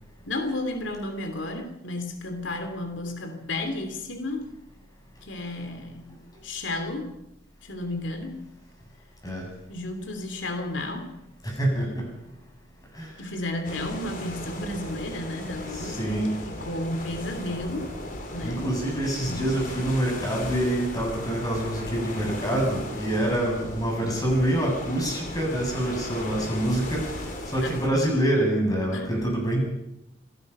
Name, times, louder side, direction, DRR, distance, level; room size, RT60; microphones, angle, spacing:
voice 1, 0.3-4.5 5.2-6.1 6.4-7.1 7.6-8.4 9.7-11.1 13.2-16.2 16.6-17.9 18.3-18.7 19.2-19.5 27.6-27.8 28.9-29.1, left 2 dB, 90° left, 6 dB, 2.9 m, -32 dB
voice 2, 11.4-12.1 12.9-13.3 15.7-16.4 18.4-29.6, right 1 dB, 20° left, 0 dB, 7.4 m, -26 dB
sound 1, 13.6-27.9, left 1 dB, 50° left, 4.0 m, -36 dB
26.5 x 18.0 x 5.6 m, 0.83 s
head